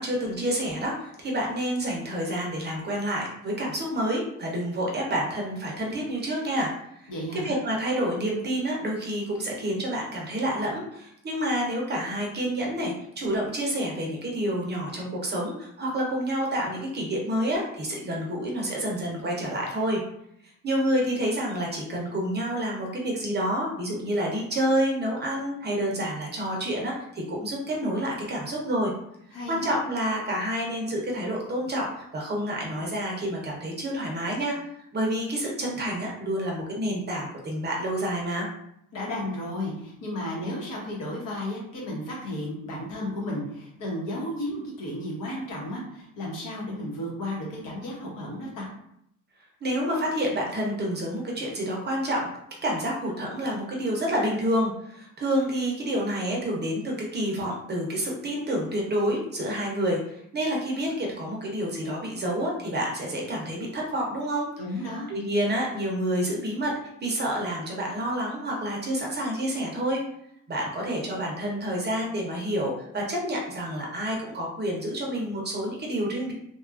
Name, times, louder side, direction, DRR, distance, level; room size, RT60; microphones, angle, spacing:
voice 1, 0.0-6.7 7.0-20.0 20.6-28.9 29.5-34.6 34.9-38.5 49.6-52.3 52.6-64.5 65.1-66.7 67.0-70.0 70.5-76.3, equal, 30° right, -1 dB, 0.5 m, -28 dB
voice 2, 7.1-7.5 29.3-29.8 38.9-48.7 64.6-65.1, left 1 dB, 65° left, -3 dB, 1.0 m, -33 dB
2.8 x 2.3 x 2.3 m, 0.75 s
cardioid pair, 140°, 35 cm